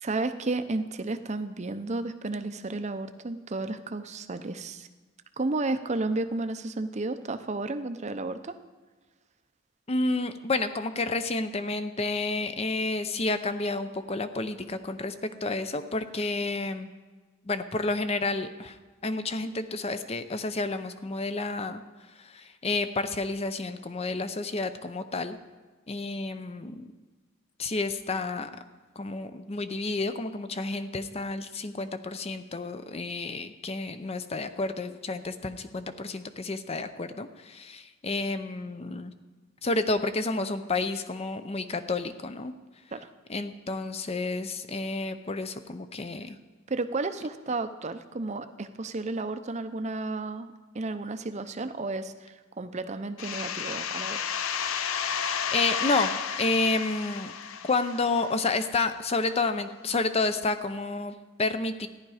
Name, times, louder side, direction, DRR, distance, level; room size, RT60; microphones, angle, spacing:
voice 1, 0.0-4.9 5.4-8.5 42.9-43.1 46.7-54.4, right 2 dB, 30° right, 9 dB, 0.6 m, -32 dB
voice 2, 9.9-15.1 15.4-16.9 17.4-18.8 19.0-21.8 22.2-25.4 25.9-26.9 27.6-28.5 29.0-39.1 39.6-42.5 43.3-46.4 55.5-57.3 57.6-61.9, left 3 dB, 30° left, 11 dB, 0.6 m, -30 dB
sound 1, 53.2-58.7, left 7 dB, 70° left, 0.6 m, -32 dB
14.5 x 10.5 x 4.9 m, 1.3 s
head